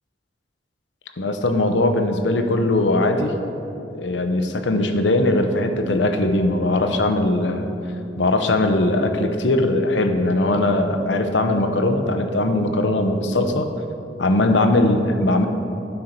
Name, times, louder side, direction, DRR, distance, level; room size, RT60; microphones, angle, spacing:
voice 1, 1.2-3.3 3.9-7.7 8.2-13.7 14.2-15.5, left 2 dB, 80° left, 6 dB, 0.8 m, -20 dB
9.5 x 4.5 x 6.6 m, 2.8 s
head